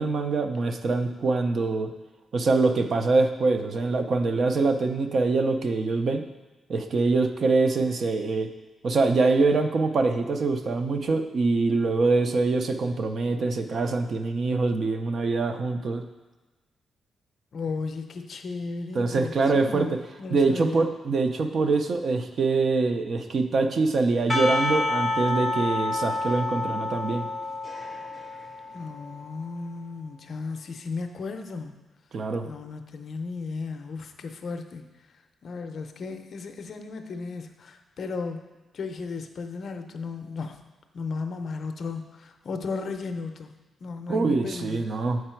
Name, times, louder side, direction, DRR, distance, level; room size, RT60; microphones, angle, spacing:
voice 1, 0.0-1.9 2.3-6.2 6.7-8.5 8.8-16.0 18.9-19.9 20.3-27.3 32.1-32.5 44.1-45.2, right 3 dB, 45° right, 7 dB, 0.5 m, -24 dB
voice 2, 17.5-20.9 28.7-31.8 32.4-34.8 35.4-38.4 38.7-40.6 40.9-43.5 43.8-44.8, left 4 dB, 50° left, 6 dB, 0.5 m, -35 dB
Percussion / Church bell, 24.3-29.3, left 2 dB, 5° left, 0.6 m, -29 dB
7.6 x 4.7 x 4.4 m, 1.2 s
wide cardioid pair, 150°, 0 cm